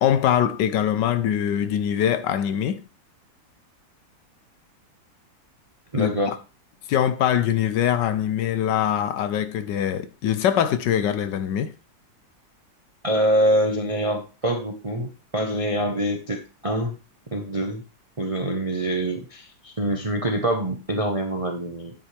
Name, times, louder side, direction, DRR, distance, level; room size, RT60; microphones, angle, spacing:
voice 1, 0.0-2.8 6.0-6.1 6.9-11.7, left 10 dB, 70° left, 1.2 m, -23 dB
voice 2, 5.9-6.4 13.0-16.9 17.3-17.8 18.2-21.9, right 1 dB, 30° right, 0.6 m, -25 dB
9.6 x 8.4 x 3.3 m
omnidirectional pair, 2.2 m